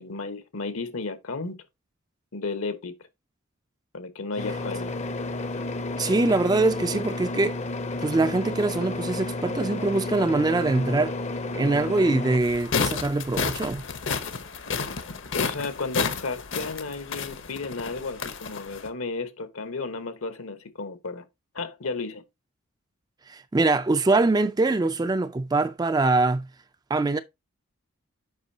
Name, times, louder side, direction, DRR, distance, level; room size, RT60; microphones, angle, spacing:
voice 1, 0.0-1.6 2.3-3.0 3.9-5.0 15.3-21.2 21.5-22.2, left 3 dB, 70° left, 1.1 m, -33 dB
sound 1, 4.4-12.4, left 2 dB, 30° left, 0.6 m, -32 dB
voice 2, 6.0-7.6 8.0-11.1 11.5-13.8 23.3-26.5 26.9-27.2, right 3 dB, 20° right, 0.3 m, -23 dB
sound 2, 12.4-18.9, left 5 dB, 55° left, 0.8 m, -31 dB
8.0 x 5.4 x 2.7 m
head